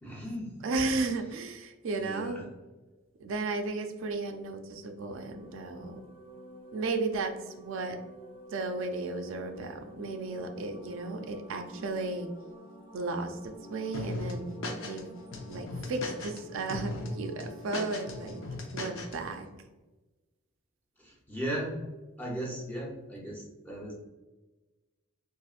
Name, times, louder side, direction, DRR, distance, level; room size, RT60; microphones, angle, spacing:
voice 1, 0.0-0.5 1.9-2.4 21.0-21.8 22.2-23.9, right 1 dB, 10° left, -4 dB, 0.7 m, -37 dB
voice 2, 0.6-2.4 3.2-6.0 6.7-7.3 7.6-8.0 8.5-12.3 12.9-13.4 13.7-15.1 15.5-18.4 18.7-19.5, right 3 dB, 60° right, 5 dB, 0.3 m, -34 dB
sound 1, 4.8-18.5, equal, 45° left, 1.0 m, -49 dB
sound 2, 13.9-15.0 15.3-16.4 16.7-17.1 17.4-19.2, left 2 dB, 60° left, 0.6 m, -37 dB
4.1 x 2.4 x 2.4 m, 1.2 s
head